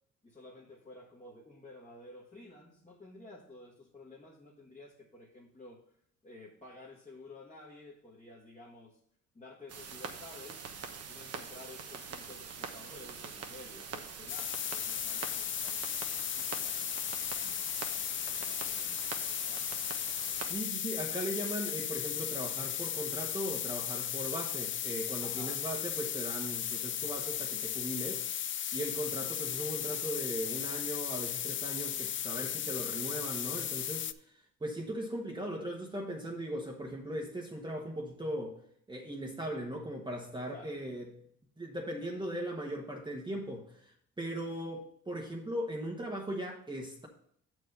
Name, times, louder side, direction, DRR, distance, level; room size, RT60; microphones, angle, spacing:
voice 1, 0.2-5.8 6.2-9.0 9.3-10.7 11.1-17.1 17.3-17.7 18.1-19.7 20.4-20.5 25.2-25.6 40.5-40.8, left 2 dB, 25° left, -4 dB, 1.7 m, -53 dB
sound 1, 9.7-20.5, right 6 dB, 55° right, 1.2 m, -44 dB
sound 2, 14.3-34.1, left 10 dB, 40° left, 0.4 m, -36 dB
voice 2, 20.4-28.2 28.7-34.1 34.6-38.6 38.9-41.1 41.6-47.1, right 1 dB, 15° right, -2 dB, 1.3 m, -38 dB
7.0 x 4.7 x 6.7 m, 0.67 s
cardioid pair, 90°, 30 cm